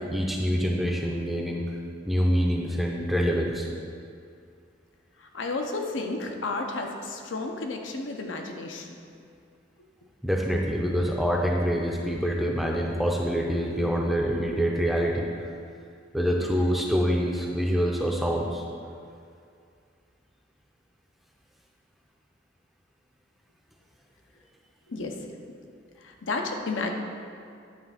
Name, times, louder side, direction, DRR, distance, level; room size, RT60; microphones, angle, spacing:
voice 1, 0.0-1.6 2.1-3.7 10.2-15.3 16.1-18.6, equal, ahead, -1 dB, 0.5 m, -25 dB
voice 2, 5.2-9.0 24.9-25.3 26.0-26.9, left 3 dB, 75° left, 3 dB, 0.7 m, -32 dB
9.3 x 3.4 x 5.7 m, 2.4 s
head